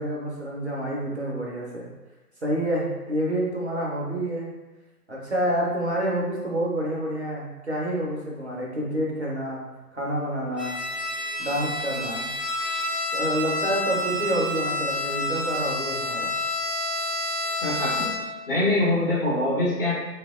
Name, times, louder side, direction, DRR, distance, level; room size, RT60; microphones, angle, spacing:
voice 1, 0.0-1.8 2.4-4.5 5.1-9.6 9.9-10.8 11.4-12.3 13.1-16.3, equal, 45° right, -4 dB, 0.4 m, -28 dB
Bowed string instrument, 10.6-18.4, left 1 dB, 90° left, 0.9 m, -29 dB
voice 2, 17.6-19.9, left 1 dB, 35° left, -8 dB, 0.8 m, -24 dB
2.6 x 2.0 x 2.3 m, 1.1 s
figure-of-eight pair, 145°, 48 cm